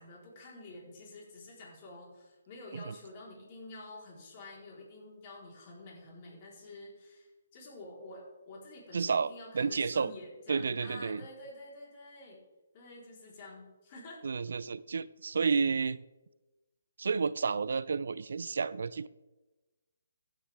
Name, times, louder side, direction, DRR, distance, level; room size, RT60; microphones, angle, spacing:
voice 1, 0.0-12.4 12.7-14.2, left 2 dB, 35° left, -3 dB, 4.2 m, -49 dB
voice 2, 8.9-10.1 10.5-11.2 14.2-16.0 17.0-19.1, right 5 dB, 70° right, 18 dB, 0.4 m, -31 dB
16.0 x 9.1 x 3.6 m, 1.1 s
hypercardioid pair, 150°, 0 cm